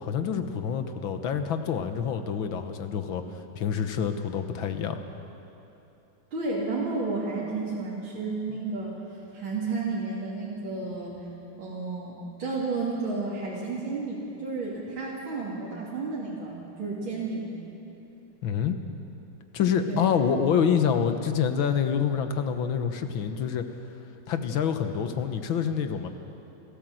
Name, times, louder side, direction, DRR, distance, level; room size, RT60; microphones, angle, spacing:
voice 1, 0.0-5.0 18.4-18.8 19.5-23.6 24.3-26.1, left 7 dB, 75° left, 8 dB, 1.9 m, -27 dB
voice 2, 6.3-8.9 9.3-11.2 11.6-17.5 19.9-20.1, right 3 dB, 75° right, -7 dB, 3.7 m, -32 dB
29.5 x 12.0 x 7.7 m, 2.9 s
omnidirectional pair, 2.2 m